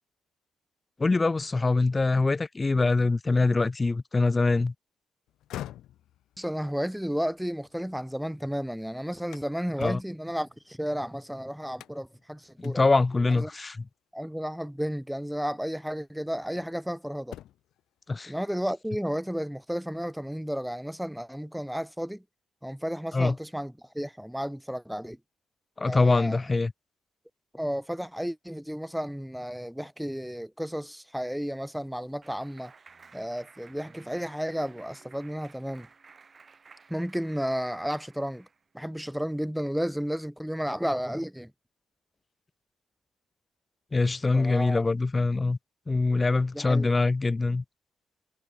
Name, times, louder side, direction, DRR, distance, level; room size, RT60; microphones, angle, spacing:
voice 1, 1.0-4.7 9.8-10.0 12.6-13.9 18.1-18.3 23.1-23.3 25.8-26.7 43.9-45.6 45.9-47.6, left 3 dB, 25° left, 0.4 m, -24 dB
sound 1, 5.3-8.4 8.8-11.2 11.7-12.2 12.6-12.8 13.3-13.8 15.0-15.2 15.8-16.9 17.2-17.8, left 13 dB, 80° left, 2.8 m, -46 dB
voice 2, 6.4-12.8 13.3-13.5 14.1-17.4 18.3-22.2 22.6-25.2 25.8-26.4 27.5-32.7 33.1-35.9 36.9-38.5 38.7-41.5 44.3-44.9 46.5-46.9, equal, ahead, 0.9 m, -32 dB
Clapping, 31.4-38.6, right 5 dB, 35° right, 5.0 m, -55 dB
cardioid pair, 90°, 0 cm